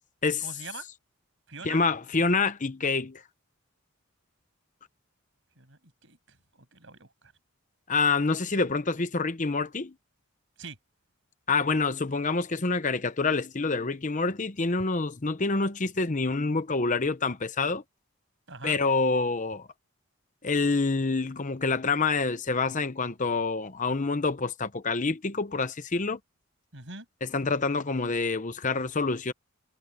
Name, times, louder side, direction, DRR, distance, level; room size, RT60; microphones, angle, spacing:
voice 1, 0.4-0.9 1.5-1.9 5.6-7.3 10.6-10.8 18.5-18.8 26.7-27.1, right 4 dB, 60° right, 7.7 m, -44 dB
voice 2, 1.6-3.2 7.9-9.9 11.5-17.8 18.6-19.7 20.4-26.2 27.2-29.3, left 4 dB, 35° left, 0.9 m, -27 dB
head